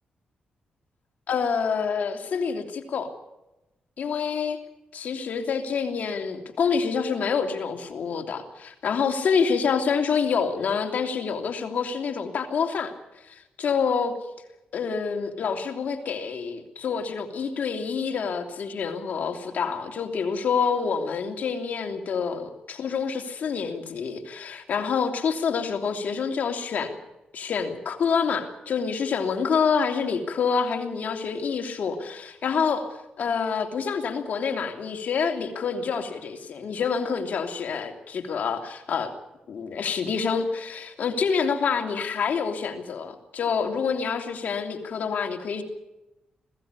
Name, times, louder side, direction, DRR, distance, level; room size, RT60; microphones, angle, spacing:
voice 1, 1.3-3.1 4.0-4.6 4.9-12.9 13.2-14.1 14.7-27.0 27.3-32.9 33.2-39.1 39.5-45.6, left 6 dB, 70° left, 4 dB, 3.0 m, -27 dB
21.0 x 16.0 x 9.6 m, 0.96 s
cardioid pair, 85°, 3 cm